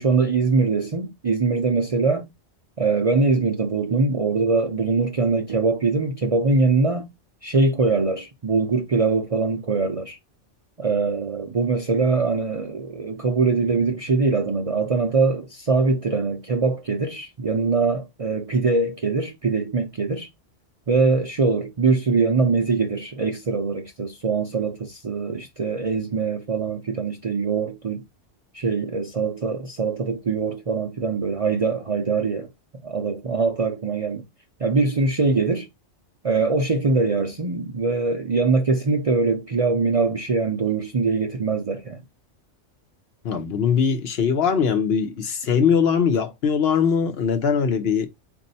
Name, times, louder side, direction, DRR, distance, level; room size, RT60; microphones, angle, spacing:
voice 1, 0.0-2.2 2.8-7.1 7.4-10.2 10.8-20.3 20.9-28.0 28.5-32.5 32.8-34.2 34.6-35.7 36.2-42.0, right 4 dB, 40° right, 0.5 m, -22 dB
voice 2, 43.2-48.1, left 6 dB, 60° left, 0.8 m, -21 dB
4.2 x 2.6 x 4.0 m
omnidirectional pair, 1.3 m